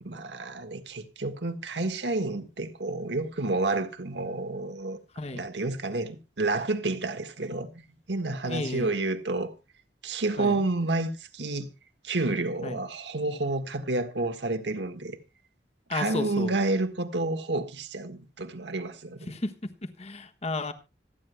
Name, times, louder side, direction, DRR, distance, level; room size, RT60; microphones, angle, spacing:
voice 1, 0.0-5.0 5.3-7.7 8.1-9.5 10.0-11.7 12.0-15.2 15.9-19.3, right 2 dB, 80° right, 1.5 m, -30 dB
voice 2, 8.4-8.9 10.4-10.6 12.6-12.8 15.9-16.5 19.3-19.5 19.8-20.7, left 2 dB, 35° left, 1.4 m, -33 dB
26.0 x 9.6 x 2.2 m
head